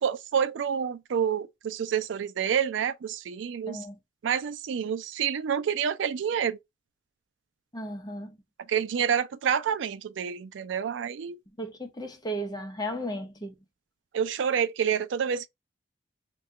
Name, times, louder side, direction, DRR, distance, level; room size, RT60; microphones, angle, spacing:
voice 1, 0.0-3.9 4.2-6.6 8.7-11.4 14.1-15.5, right 8 dB, 80° right, 0.4 m, -28 dB
voice 2, 3.7-4.0 7.7-8.4 11.6-13.5, equal, 20° left, 0.7 m, -35 dB
2.8 x 2.2 x 3.5 m
head